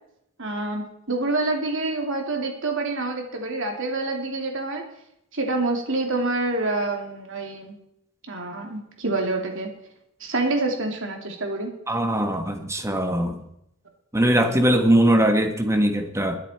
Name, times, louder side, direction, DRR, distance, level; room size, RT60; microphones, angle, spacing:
voice 1, 0.4-4.8 5.3-7.7 8.3-9.7 10.2-11.7, right 2 dB, 60° right, 2 dB, 3.1 m, -27 dB
voice 2, 11.9-13.4 14.1-16.4, right 1 dB, 15° right, 6 dB, 1.5 m, -21 dB
21.5 x 10.0 x 4.5 m, 0.78 s
head